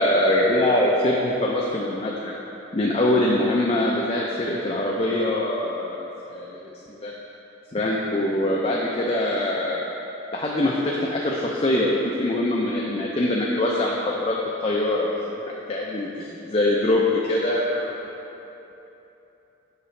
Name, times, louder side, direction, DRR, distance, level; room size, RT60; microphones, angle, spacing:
voice 1, 0.0-2.3 2.7-7.1 7.7-9.8 10.3-15.4 15.7-18.0, left 1 dB, 30° left, -3 dB, 0.4 m, -23 dB
8.1 x 6.1 x 3.2 m, 3.0 s
head